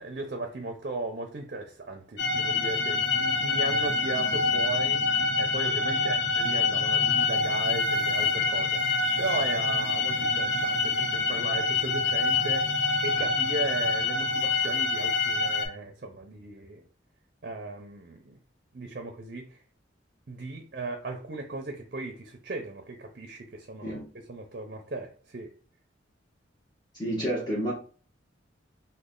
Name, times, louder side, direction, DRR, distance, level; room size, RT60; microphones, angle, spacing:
voice 1, 0.0-16.8 17.4-18.4 18.7-19.6 20.3-24.0 24.3-25.5, right 2 dB, 50° right, 0.6 m, -36 dB
sound 1, 2.2-15.7, left 4 dB, 70° left, 0.9 m, -26 dB
voice 2, 26.9-27.7, equal, 20° left, 1.0 m, -30 dB
3.2 x 2.2 x 3.7 m
head